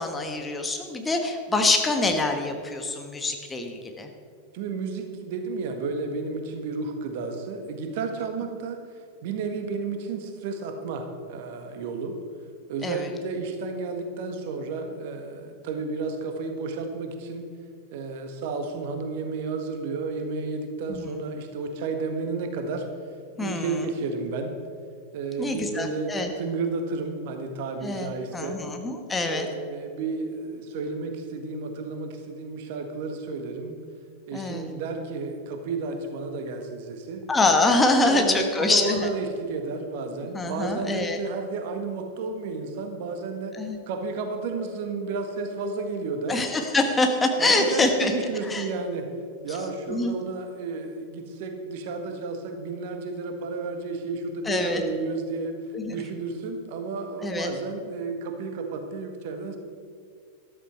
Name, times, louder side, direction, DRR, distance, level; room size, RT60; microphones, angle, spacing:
voice 1, 0.0-4.1 12.8-13.1 20.9-21.1 23.4-23.8 25.4-26.3 27.8-29.5 34.3-34.7 37.3-39.1 40.3-41.2 43.5-43.8 46.3-48.1 48.5-48.7 49.5-49.6 49.9-50.1 54.4-54.8 55.7-56.0 57.2-57.5, left 2 dB, 15° left, 4 dB, 1.3 m, -25 dB
voice 2, 4.5-8.8 9.2-12.1 12.7-17.5 17.9-22.9 23.4-24.5 25.1-28.6 29.2-33.8 34.3-37.2 38.0-43.6 43.9-46.4 47.4-49.1 49.4-55.5 55.9-59.6, right 4 dB, 50° right, 6 dB, 1.6 m, -32 dB
13.5 x 12.5 x 4.6 m, 2.2 s
figure-of-eight pair, 90°, 0 cm